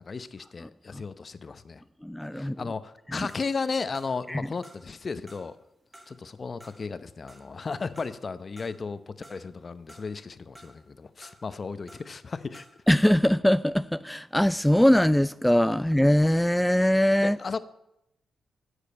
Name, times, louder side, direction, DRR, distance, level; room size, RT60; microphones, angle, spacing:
voice 1, 0.0-1.8 2.3-5.6 6.1-12.7 17.2-17.6, left 4 dB, 50° left, 0.8 m, -35 dB
voice 2, 2.0-2.6 3.1-3.3 4.3-4.4 12.9-17.4, equal, 5° left, 0.3 m, -22 dB
sound 1, 3.3-4.4 4.6-5.6 5.9-8.9 9.2-10.2 10.5-12.2 12.5-12.9, right 1 dB, 20° right, 2.7 m, -54 dB
10.5 x 6.6 x 8.5 m
supercardioid pair, 45°, 0 cm